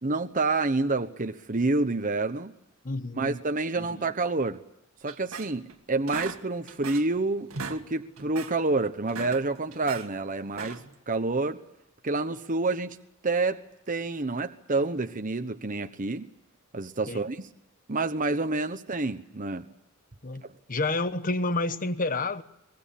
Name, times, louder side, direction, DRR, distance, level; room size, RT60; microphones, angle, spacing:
voice 1, 0.0-2.5 3.2-4.6 5.0-5.6 5.9-10.8 11.1-11.6 12.0-13.0 13.2-13.6 13.9-16.3 16.7-17.4 17.9-19.7, right 3 dB, 40° right, 1.1 m, -28 dB
voice 2, 2.8-3.4 3.8-4.0 17.1-17.2 20.2-20.4 20.7-22.4, left 2 dB, 40° left, 1.3 m, -29 dB
sound 1, 5.1-5.8 6.1-7.2 7.4-7.8 8.2-8.6 9.0-10.1 10.5-11.0, right 4 dB, 85° right, 2.0 m, -38 dB
24.0 x 21.0 x 8.6 m
head